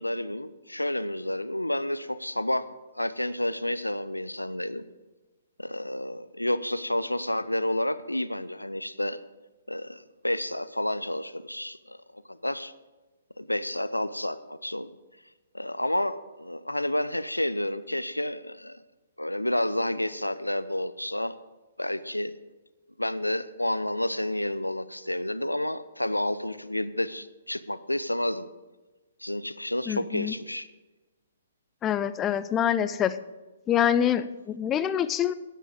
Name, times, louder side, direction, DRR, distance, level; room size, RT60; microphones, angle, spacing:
voice 1, 0.0-2.7 2.9-4.8 5.6-9.2 9.7-12.7 13.4-14.9 15.5-18.8 19.2-21.4 21.8-22.3 23.0-28.5 29.2-30.7, left 1 dB, 90° left, 15 dB, 0.6 m, -30 dB
voice 2, 29.9-30.3 31.8-33.1 33.7-35.3, left 9 dB, 20° left, 14 dB, 0.5 m, -25 dB
13.0 x 10.0 x 5.1 m, 1.2 s
figure-of-eight pair, 125°, 0 cm